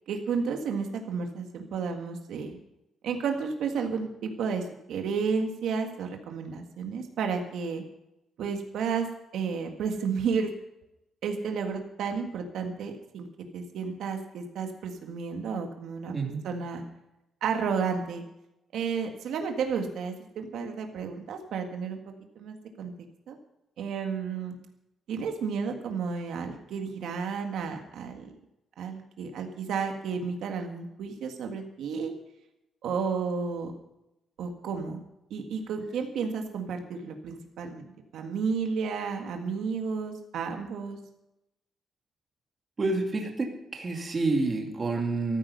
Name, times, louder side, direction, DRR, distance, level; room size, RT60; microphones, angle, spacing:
voice 1, 0.1-2.6 3.0-7.8 8.4-9.1 9.3-10.5 11.2-13.3 13.5-16.2 16.4-16.8 17.4-18.2 18.7-22.0 22.4-22.9 23.3-23.4 23.8-24.6 25.1-28.3 28.8-32.1 32.8-33.7 34.4-35.0 35.3-37.9 38.1-41.0, right 5 dB, 75° right, 4 dB, 1.8 m, -32 dB
voice 2, 16.1-16.4 42.8-45.4, right 3 dB, 25° right, 2 dB, 2.4 m, -28 dB
14.0 x 14.0 x 5.5 m, 0.90 s
cardioid pair, 175°, 0 cm